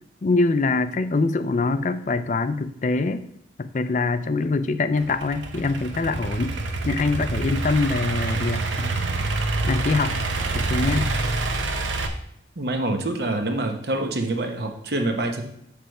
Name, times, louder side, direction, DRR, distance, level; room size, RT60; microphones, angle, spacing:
voice 1, 0.2-3.3 3.6-6.6 6.8-9.0 9.6-10.2 10.5-11.1, left 3 dB, 40° left, 12 dB, 0.4 m, -24 dB
Idling / Accelerating revving vroom, 5.0-12.1, right 3 dB, 90° right, 0.8 m, -27 dB
voice 2, 12.6-15.4, right 2 dB, 60° right, 5 dB, 1.0 m, -26 dB
8.4 x 3.4 x 6.4 m, 0.73 s
head